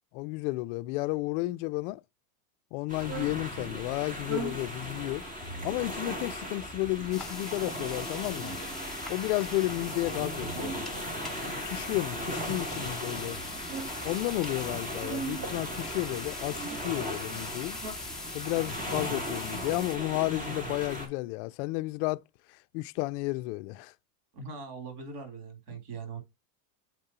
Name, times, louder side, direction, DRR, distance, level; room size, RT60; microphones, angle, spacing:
voice 1, 0.1-2.0 2.7-5.2 5.6-8.6 9.1-10.8 11.4-13.4 14.0-17.8 18.3-22.2 22.7-23.9, left 20 dB, 50° left, 0.5 m, -32 dB
sound 1, 2.9-21.1, equal, 15° right, 2.4 m, -37 dB
sound 2, 3.0-3.4 4.1-4.6 5.4-5.9 6.6-7.2 8.1-9.3 9.8-10.9 11.6-12.6 13.3-14.0 14.9-15.5 16.3-16.9 17.5-17.9, right 5 dB, 55° right, 2.7 m, -42 dB
sound 3, 7.1-20.0, left 3 dB, ahead, 0.6 m, -43 dB
voice 2, 20.2-20.7 24.3-26.2, right 3 dB, 80° right, 3.4 m, -41 dB
7.4 x 5.2 x 2.8 m
supercardioid pair, 155°, 46 cm